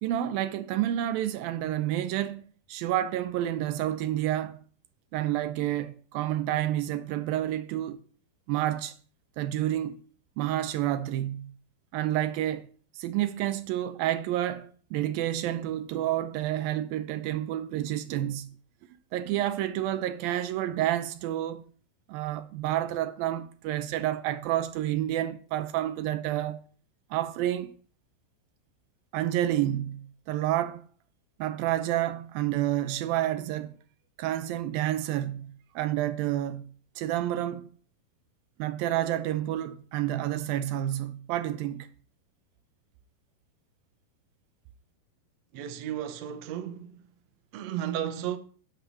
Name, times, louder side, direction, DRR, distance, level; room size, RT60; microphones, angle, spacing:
voice 1, 0.0-4.6 5.1-8.0 8.5-9.0 9.4-10.0 10.4-11.5 11.9-12.7 12.9-18.5 19.1-21.6 22.1-26.6 27.1-27.7 29.1-30.9 31.4-33.8 34.2-37.7 38.6-41.9, right 13 dB, 80° right, 2.4 m, -29 dB
voice 2, 45.5-47.1 47.5-48.4, right 10 dB, 65° right, 1.9 m, -34 dB
11.5 x 7.3 x 8.5 m
omnidirectional pair, 4.3 m